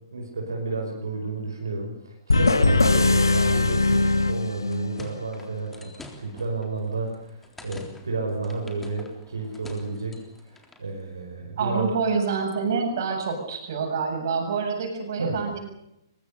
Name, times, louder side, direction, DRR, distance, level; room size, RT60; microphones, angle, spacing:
voice 1, 0.1-11.9 15.2-15.4, right 3 dB, 80° right, 0 dB, 5.5 m, -32 dB
sound 1, 2.3-5.1, left 2 dB, 85° left, 1.5 m, -20 dB
sound 2, 4.7-10.9, left 2 dB, 10° left, 3.6 m, -47 dB
voice 2, 11.6-15.6, right 5 dB, 60° right, 4 dB, 7.6 m, -27 dB
23.0 x 22.0 x 6.8 m, 0.83 s
figure-of-eight pair, 120°, 2 cm